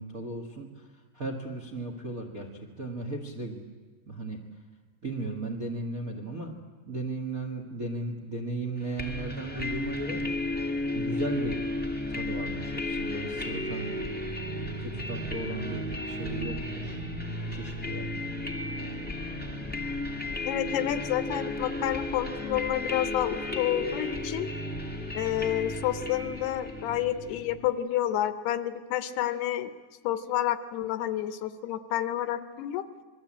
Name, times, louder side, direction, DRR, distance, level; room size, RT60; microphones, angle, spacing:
voice 1, 0.0-3.6 4.0-4.4 5.0-6.5 6.9-10.3 10.9-11.6 12.1-13.9 14.8-17.0 17.5-18.3, right 2 dB, 50° right, 2 dB, 1.0 m, -36 dB
sound 1, 9.0-27.7, left 1 dB, 15° left, 0.3 m, -34 dB
voice 2, 20.4-24.5 25.1-29.7 30.0-32.8, left 12 dB, 75° left, 12 dB, 2.8 m, -29 dB
26.5 x 22.0 x 8.8 m, 1.4 s
omnidirectional pair, 4.9 m